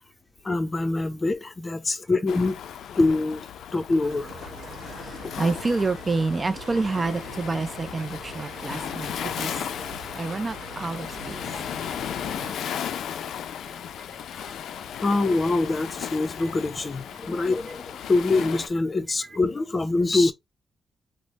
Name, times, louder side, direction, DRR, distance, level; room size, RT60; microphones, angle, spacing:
voice 1, 0.4-2.6 3.0-3.4 3.7-4.3 15.0-20.3, left 3 dB, 25° left, 0.5 m, -24 dB
Waves surf, 2.3-18.7, left 9 dB, 80° left, 0.3 m, -36 dB
sound 1, 4.0-12.6, right 4 dB, 65° right, 1.0 m, -43 dB
voice 2, 4.9-9.6 10.2-11.4 13.7-13.8 14.3-14.5 16.4-16.5 19.3-19.4, right 3 dB, 30° right, 0.4 m, -28 dB
3.2 x 2.0 x 4.0 m
cardioid pair, 110°, 0 cm